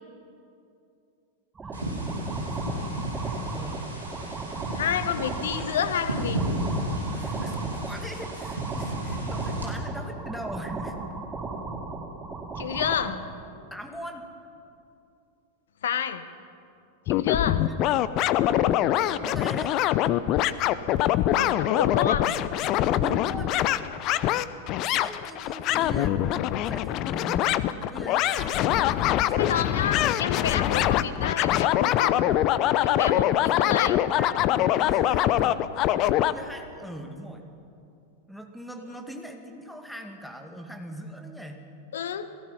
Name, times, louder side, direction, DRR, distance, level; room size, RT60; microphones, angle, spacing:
sound 1, 1.5-13.1, right 3 dB, 15° right, 2.7 m, -36 dB
voice 1, 1.6-3.2 3.5-3.9 5.1-5.2 7.1-11.0 13.1-13.2 13.7-14.2 17.6-17.7 19.2-19.8 23.0-23.7 25.0-27.5 27.9-29.9 31.0-31.3 32.9-35.6 36.2-37.5 38.3-41.7, right 1 dB, ahead, 4 dB, 2.3 m, -41 dB
sound 2, 1.7-9.7, right 1 dB, 80° right, 4.3 m, -33 dB
voice 2, 4.7-6.4 12.6-13.2 15.8-16.3 17.1-17.6 21.3-22.4 29.3-32.2 32.8-33.3 33.6-34.0 41.9-42.3, left 8 dB, 60° left, 12 dB, 1.2 m, -29 dB
sound 3, 17.1-36.3, left 13 dB, 40° left, 0.7 m, -24 dB
29.5 x 18.0 x 5.8 m, 2.7 s
figure-of-eight pair, 90°, 0 cm